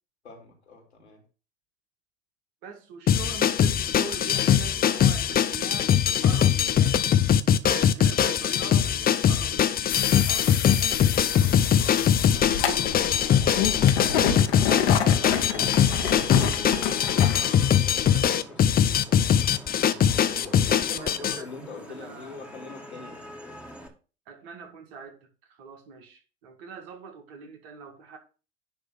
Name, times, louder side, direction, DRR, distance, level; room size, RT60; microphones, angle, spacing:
voice 1, 0.2-1.2 13.6-19.3 20.4-23.3, left 3 dB, 90° left, 3.1 m, -45 dB
voice 2, 2.6-7.1 7.6-12.2 15.9-16.0 21.0-22.3 24.3-28.2, right 5 dB, 60° right, 2.3 m, -43 dB
sound 1, 3.1-21.4, left 9 dB, 30° left, 0.8 m, -22 dB
sound 2, 9.9-17.6, left 8 dB, 70° left, 1.8 m, -29 dB
Vehicle horn car horn honking / Traffic noise roadway noise, 11.1-23.9, right 1 dB, 5° right, 2.1 m, -44 dB
10.5 x 3.5 x 6.8 m
hypercardioid pair, 80°, 32 cm